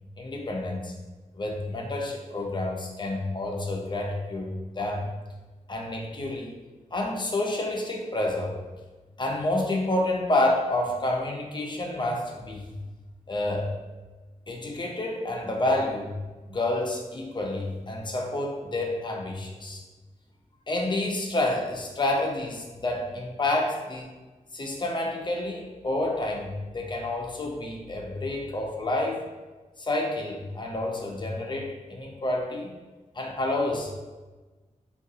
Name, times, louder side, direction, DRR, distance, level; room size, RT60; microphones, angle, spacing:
voice 1, 0.2-0.9 1.3-5.1 5.7-6.5 6.9-8.6 9.2-12.8 13.3-13.7 14.5-16.2 16.5-19.8 20.7-24.1 24.5-29.2 29.8-32.7 33.1-33.9, left 1 dB, 35° left, 0 dB, 0.5 m, -29 dB
3.6 x 2.3 x 2.7 m, 1.2 s
wide cardioid pair, 100°, 14 cm